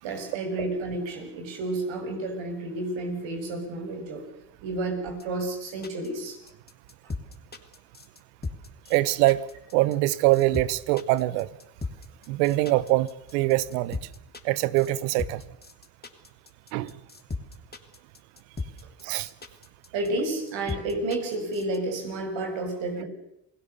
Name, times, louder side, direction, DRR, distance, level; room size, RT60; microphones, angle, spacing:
voice 1, 0.0-4.2 4.6-6.4 19.9-23.0, right 2 dB, 70° right, 6.5 m, -31 dB
sound 1, 5.1-21.8, left 3 dB, 20° left, 3.0 m, -37 dB
voice 2, 8.9-9.4 9.7-11.5 12.3-14.0 14.4-15.4 16.7-16.9 19.0-19.3, right 17 dB, 85° right, 1.0 m, -23 dB
28.5 x 18.5 x 6.9 m
supercardioid pair, 65°, 47 cm